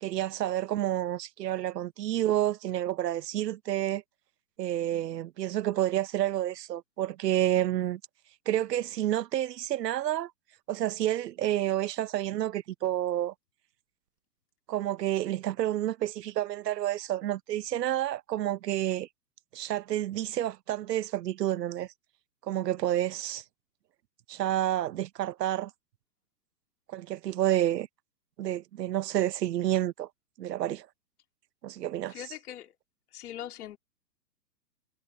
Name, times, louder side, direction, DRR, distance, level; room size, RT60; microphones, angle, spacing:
voice 1, 0.0-4.0 4.6-8.0 8.5-10.3 10.7-13.3 14.7-19.1 19.5-21.9 22.4-23.4 24.3-25.7 26.9-27.9 28.4-30.1 30.4-30.9 31.6-32.2, right 13 dB, 70° right, 1.0 m, -29 dB
voice 2, 32.1-32.7 33.1-33.8, left 11 dB, 60° left, 2.6 m, -41 dB
hypercardioid pair, 135°, 50 cm